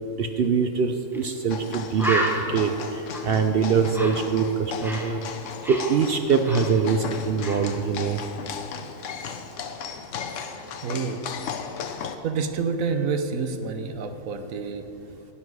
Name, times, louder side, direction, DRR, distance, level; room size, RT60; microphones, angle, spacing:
voice 1, 0.2-5.2 5.7-8.2, right 5 dB, 60° right, 6 dB, 0.6 m, -23 dB
Bird, 1.1-1.3 1.6-1.7 2.0-5.2 5.4-7.1 7.4-7.7, equal, ahead, 1.0 m, -31 dB
sound 1, 1.5-12.2, left 6 dB, 70° left, 1.1 m, -36 dB
voice 2, 10.8-11.2 12.0-14.8, right 5 dB, 75° right, 8 dB, 1.2 m, -28 dB
12.5 x 9.8 x 4.8 m, 2.9 s
omnidirectional pair, 1.4 m